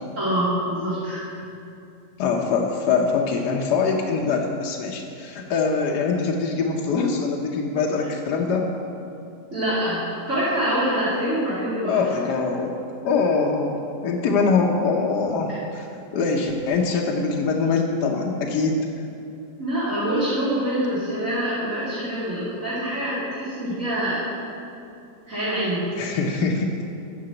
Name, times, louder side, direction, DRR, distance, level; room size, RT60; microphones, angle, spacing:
voice 1, 0.2-1.2 9.5-11.9 19.6-24.2 25.3-25.8, right 1 dB, 50° right, -11 dB, 2.7 m, -25 dB
voice 2, 2.2-8.7 11.8-12.7 13.0-15.9 16.1-18.8 26.0-26.7, left 4 dB, 80° left, 1 dB, 1.4 m, -23 dB
9.9 x 5.8 x 7.6 m, 2.6 s
omnidirectional pair, 1.7 m